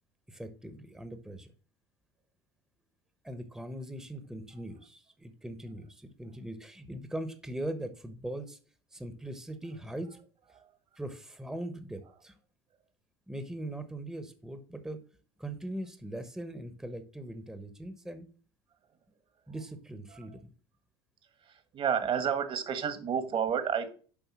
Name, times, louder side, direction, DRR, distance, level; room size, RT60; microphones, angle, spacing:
voice 1, 0.3-1.5 3.2-8.6 8.9-10.2 11.0-12.3 13.3-15.0 15.4-18.3 19.5-20.5, right 1 dB, 5° right, 10 dB, 1.1 m, -40 dB
voice 2, 21.5-23.9, right 7 dB, 45° right, 10 dB, 1.6 m, -30 dB
7.3 x 5.3 x 6.2 m, 0.41 s
figure-of-eight pair, 65°, 13 cm